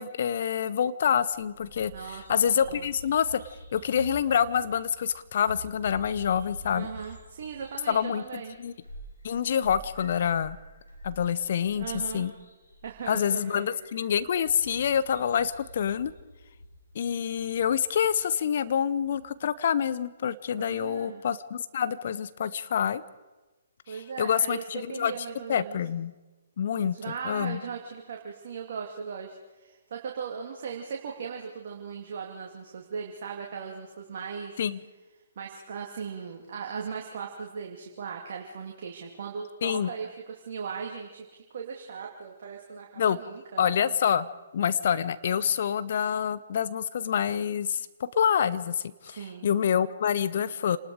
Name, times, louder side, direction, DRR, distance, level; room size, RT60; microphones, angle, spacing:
voice 1, 0.0-3.4 3.7-6.9 7.9-8.7 9.2-10.6 11.0-12.3 13.1-16.1 16.9-23.0 23.9-25.1 25.5-26.1 26.6-27.0 27.2-27.6 34.6-34.8 39.6-39.9 43.0-43.2 43.6-44.3 44.5-50.8, left 8 dB, 50° left, 16 dB, 0.9 m, -27 dB
Bird vocalization bird call bird song, 1.1-19.2, equal, 80° left, 5.7 m, -48 dB
voice 2, 1.9-2.9 6.7-8.6 11.7-12.2 12.8-13.7 20.6-21.2 23.9-25.8 26.8-34.6 35.4-43.7 49.0-49.5, right 6 dB, 50° right, 0 dB, 2.5 m, -38 dB
28.5 x 20.0 x 4.9 m, 1.2 s
figure-of-eight pair, 130°, 0 cm